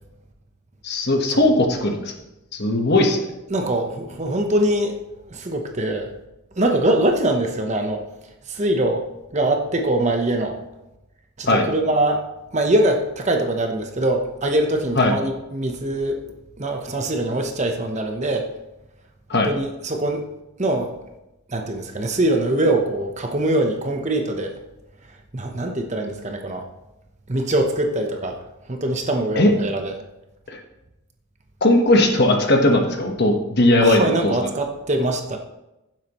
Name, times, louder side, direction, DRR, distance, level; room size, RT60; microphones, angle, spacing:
voice 1, 0.8-2.1 2.5-3.2 11.5-11.7 15.0-15.1 19.3-19.5 29.4-29.5 30.5-30.6 31.6-34.3, left 1 dB, 45° left, 3 dB, 1.3 m, -18 dB
voice 2, 3.5-5.0 5.3-6.1 6.6-8.0 8.5-9.0 9.3-10.6 11.4-12.2 12.5-16.2 16.6-18.5 19.4-20.2 20.6-20.9 21.5-24.5 25.3-26.7 27.3-28.4 28.7-29.9 33.8-35.4, right 1 dB, 30° right, 4 dB, 0.9 m, -23 dB
15.0 x 7.5 x 3.1 m, 0.96 s
head